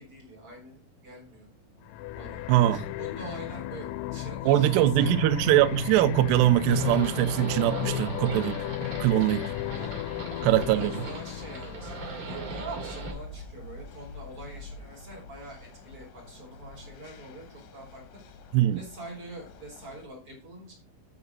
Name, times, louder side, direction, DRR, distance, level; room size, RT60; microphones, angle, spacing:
voice 1, 0.0-1.5 2.2-2.4 2.7-5.5 10.2-18.2 18.7-20.7, right 1 dB, 30° right, 4.3 m, -45 dB
sound 1, 1.9-12.4, left 14 dB, 85° left, 3.0 m, -34 dB
voice 2, 2.5-2.8 4.4-8.7 9.0-9.5 10.4-11.1 18.5-18.8, right 14 dB, 80° right, 2.5 m, -22 dB
sound 2, 6.2-20.1, left 3 dB, 70° left, 2.2 m, -46 dB
Livestock farm animals working animals, 6.7-13.1, right 4 dB, 50° right, 3.6 m, -39 dB
13.5 x 4.9 x 4.0 m
omnidirectional pair, 5.4 m